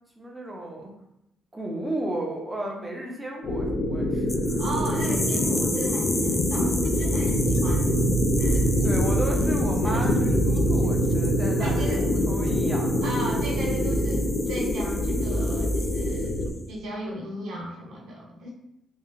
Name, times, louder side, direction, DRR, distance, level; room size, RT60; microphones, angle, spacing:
voice 1, 0.2-0.9 1.5-4.6 8.8-13.2, right 1 dB, 5° right, -1 dB, 0.7 m, -34 dB
sound 1, 3.4-16.5, equal, 75° left, 0.6 m, -24 dB
sound 2, 4.3-16.6, left 2 dB, 20° left, 0.3 m, -36 dB
voice 2, 4.6-8.7 9.8-10.1 11.6-12.0 13.0-18.5, right 1 dB, 80° right, -3 dB, 0.8 m, -36 dB
2.8 x 2.4 x 2.5 m, 0.81 s
cardioid pair, 90°, 0 cm